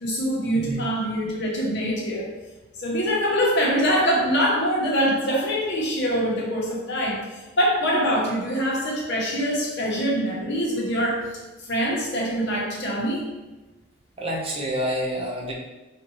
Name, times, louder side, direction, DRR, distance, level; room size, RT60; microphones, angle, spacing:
voice 1, 0.0-2.3 2.8-13.2, equal, 55° left, -3 dB, 0.9 m, -24 dB
voice 2, 14.2-15.5, equal, 30° right, -3 dB, 0.6 m, -28 dB
4.2 x 2.5 x 3.1 m, 1.1 s
head